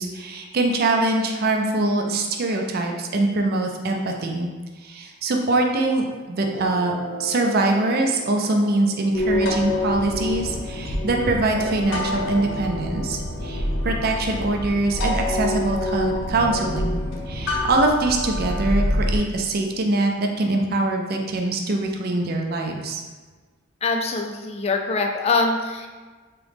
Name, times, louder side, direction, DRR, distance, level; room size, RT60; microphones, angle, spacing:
voice 1, 0.0-4.5 4.8-6.9 7.2-17.0 17.3-23.0, right 2 dB, 50° right, 2 dB, 0.4 m, -23 dB
sound 1, 6.5-10.9 11.6-16.5, right 1 dB, 65° right, 0.9 m, -39 dB
sound 2, 9.1-19.2, left 1 dB, 70° left, 0.7 m, -26 dB
voice 2, 23.8-25.9, left 3 dB, 30° left, 3 dB, 0.4 m, -23 dB
3.6 x 3.0 x 3.4 m, 1.4 s
head